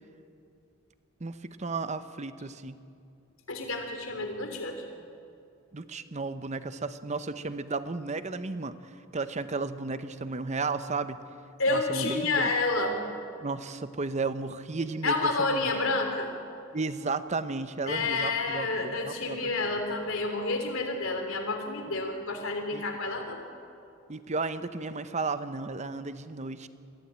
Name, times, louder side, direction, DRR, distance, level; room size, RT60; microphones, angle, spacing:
voice 1, 1.2-2.8 5.7-8.8 9.1-11.2 11.7-12.5 13.4-15.6 16.7-19.5 22.7-22.8 24.1-26.7, right 3 dB, 35° right, 12 dB, 0.8 m, -33 dB
voice 2, 3.5-4.8 11.6-13.0 15.0-16.3 17.8-23.4, left 3 dB, 85° left, 4 dB, 3.2 m, -29 dB
22.0 x 15.0 x 8.8 m, 2.6 s
head